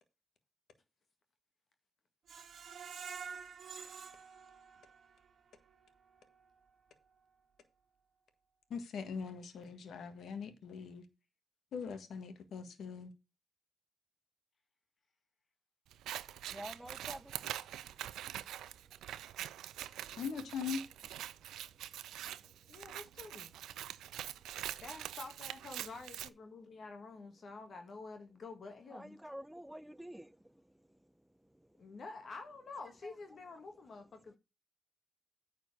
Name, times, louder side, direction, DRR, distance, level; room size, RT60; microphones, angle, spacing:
Screech, 2.3-5.3 5.7-5.8 6.2-6.3, right 6 dB, 65° right, 1.3 m, -48 dB
voice 1, 8.7-11.0 11.7-13.1 20.2-20.8, left 6 dB, 75° left, 1.5 m, -41 dB
Scissors, 15.9-26.3, right 12 dB, 85° right, 0.4 m, -44 dB
voice 2, 16.5-17.3 28.9-30.4, right 1 dB, 5° right, 0.6 m, -47 dB
voice 3, 22.7-23.5 23.9-24.1 24.8-29.2 31.8-34.4, left 3 dB, 60° left, 1.8 m, -49 dB
9.3 x 4.5 x 6.5 m
supercardioid pair, 55°, 0 cm